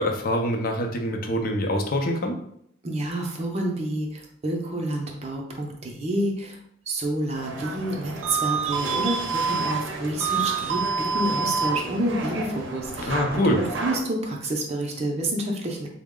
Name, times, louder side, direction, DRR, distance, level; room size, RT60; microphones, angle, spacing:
voice 1, 0.0-2.4 13.1-13.6, left 1 dB, 50° left, 3 dB, 0.5 m, -24 dB
voice 2, 2.8-6.6 6.9-15.9, right 1 dB, 35° right, 1 dB, 0.5 m, -29 dB
sound 1, 7.3-14.0, right 4 dB, 90° right, 0.6 m, -28 dB
3.7 x 2.1 x 3.6 m, 0.70 s
head